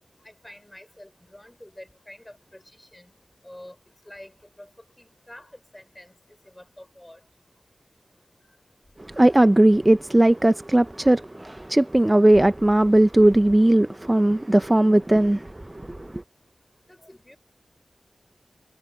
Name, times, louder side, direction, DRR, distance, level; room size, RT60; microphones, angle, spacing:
voice 1, 0.2-3.1 3.4-3.8 4.1-4.7 5.0-6.1 6.5-7.2 16.9-17.4, left 1 dB, 15° left, 5.4 m, -47 dB
voice 2, 9.0-16.2, right 1 dB, 20° right, 0.4 m, -18 dB
wide cardioid pair, 80°, 0 cm